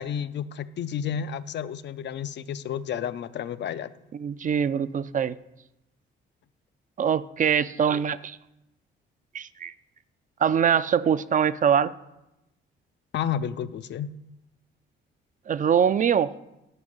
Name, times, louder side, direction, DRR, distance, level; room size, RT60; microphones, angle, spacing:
voice 1, 0.0-3.9 13.1-14.1, left 8 dB, 60° left, 13 dB, 0.6 m, -31 dB
voice 2, 4.1-5.4 7.0-8.4 9.3-9.7 10.4-11.9 15.5-16.3, right 8 dB, 40° right, 15 dB, 0.5 m, -23 dB
11.0 x 5.3 x 8.0 m, 0.90 s
cardioid pair, 90°, 20 cm